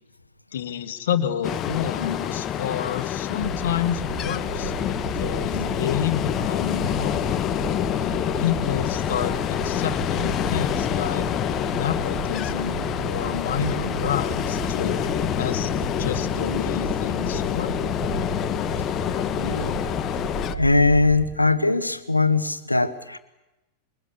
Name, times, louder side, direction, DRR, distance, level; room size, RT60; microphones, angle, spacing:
voice 1, 0.5-7.3 8.4-15.0 15.4-17.7, left 9 dB, 60° left, 9 dB, 2.0 m, -29 dB
Ocean, 1.4-20.6, left 10 dB, 30° left, 1.1 m, -27 dB
sound 1, 3.4-21.3, right 6 dB, 55° right, 3.1 m, -34 dB
voice 2, 19.4-19.7 20.5-23.2, left 3 dB, 85° left, 11 dB, 1.5 m, -21 dB
26.5 x 23.0 x 7.1 m, 0.97 s
figure-of-eight pair, 90°, 0 cm